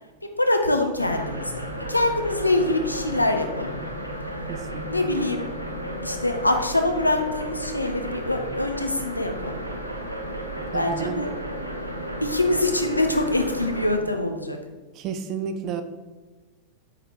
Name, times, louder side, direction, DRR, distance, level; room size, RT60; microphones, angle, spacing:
voice 1, 0.2-3.8 4.9-5.4 6.0-9.6 10.7-11.3 12.2-14.6, left 2 dB, 85° left, 5 dB, 0.4 m, -24 dB
sound 1, 1.0-14.0, right 1 dB, 90° right, 0.5 m, -33 dB
voice 2, 4.5-4.9 10.7-11.2 15.0-15.8, right 7 dB, 35° right, 9 dB, 0.4 m, -31 dB
4.7 x 3.7 x 3.0 m, 1.2 s
figure-of-eight pair, 90°, 0 cm